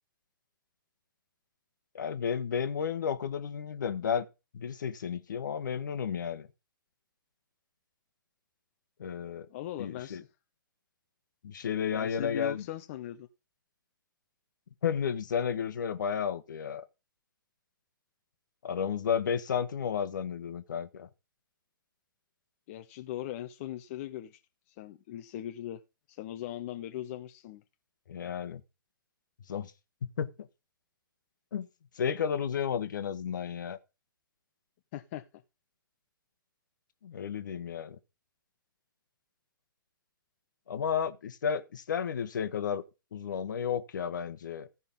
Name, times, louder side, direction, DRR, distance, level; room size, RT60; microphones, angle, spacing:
voice 1, 1.9-4.2 4.5-6.5 9.0-9.5 9.8-10.2 11.4-12.6 14.8-16.9 18.6-21.1 28.1-28.6 29.5-29.7 30.2-30.5 31.5-31.7 31.9-33.8 37.0-38.0 40.7-42.8 43.1-44.7, left 7 dB, 60° left, 1.2 m, -32 dB
voice 2, 9.5-10.3 11.9-13.3 22.7-24.4 24.7-25.8 26.1-27.6 34.9-35.2, left 13 dB, 35° left, 0.8 m, -39 dB
15.0 x 5.5 x 5.3 m
figure-of-eight pair, 120°, 12 cm